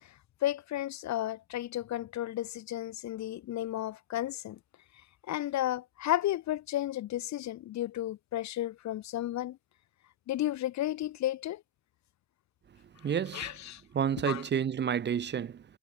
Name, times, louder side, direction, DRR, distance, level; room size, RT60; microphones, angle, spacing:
voice 1, 0.4-4.6 5.3-9.6 10.3-11.6 13.3-13.8 14.3-14.4, left 13 dB, 65° left, 0.8 m, -33 dB
voice 2, 13.0-13.5 13.9-15.6, right 8 dB, 35° right, 0.6 m, -30 dB
cardioid pair, 90°, 30 cm